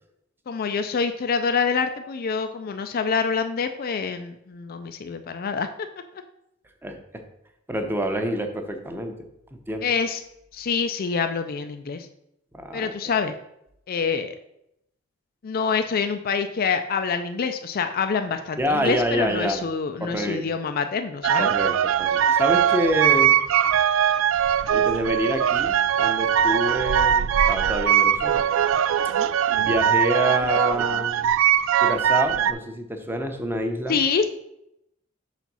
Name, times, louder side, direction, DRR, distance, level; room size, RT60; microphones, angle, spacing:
voice 1, 0.5-5.9 9.8-10.2 10.5-12.1 12.7-13.3 13.9-14.3 15.4-21.5 29.2-29.3 33.9-34.2, left 5 dB, 45° left, 8 dB, 0.4 m, -26 dB
voice 2, 6.8-7.2 7.7-9.2 9.5-9.9 12.5-12.9 18.6-19.6 20.0-20.4 21.4-21.7 22.0-23.4 24.7-28.4 29.6-31.3 31.8-34.0, equal, 10° right, 5 dB, 0.7 m, -27 dB
sound 1, 21.2-32.5, right 9 dB, 70° right, 0.3 m, -21 dB
5.6 x 4.1 x 6.0 m, 0.81 s
head